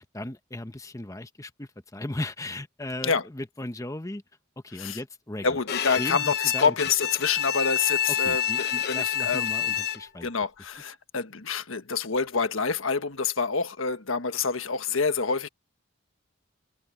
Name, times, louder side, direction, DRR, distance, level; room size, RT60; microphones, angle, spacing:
voice 1, 0.0-4.2 4.6-5.6 6.0-6.8 8.1-10.3, left 1 dB, 15° left, 0.9 m, -37 dB
voice 2, 5.4-8.4 8.9-9.5 10.2-15.5, left 5 dB, 90° left, 1.4 m, -27 dB
Bowed string instrument, 5.7-10.3, left 10 dB, 55° left, 1.0 m, -28 dB
head